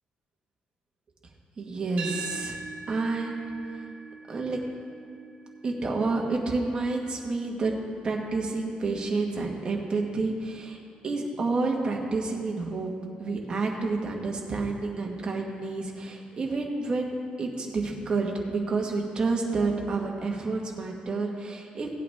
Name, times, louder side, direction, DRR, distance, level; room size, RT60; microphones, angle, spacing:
voice 1, 1.6-2.6 2.9-3.4 4.3-4.6 5.6-7.7 8.0-10.8 11.0-12.9 13.2-21.9, right 3 dB, 30° right, -1 dB, 1.5 m, -29 dB
sound 1, 2.0-10.2, right 4 dB, 50° right, 1.7 m, -44 dB
17.0 x 8.4 x 3.5 m, 2.4 s
cardioid pair, 145°, 3 cm